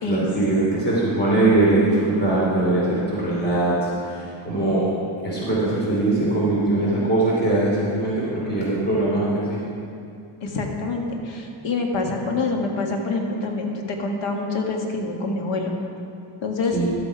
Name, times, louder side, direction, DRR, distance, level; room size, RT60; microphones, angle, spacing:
voice 1, 0.1-4.9 5.2-9.6 16.7-16.9, right 2 dB, 20° left, -6 dB, 2.9 m, -21 dB
voice 2, 10.4-15.7 16.4-16.7, left 3 dB, 60° left, 2 dB, 1.6 m, -26 dB
12.0 x 7.8 x 4.7 m, 2.5 s
cardioid pair, 120°, 49 cm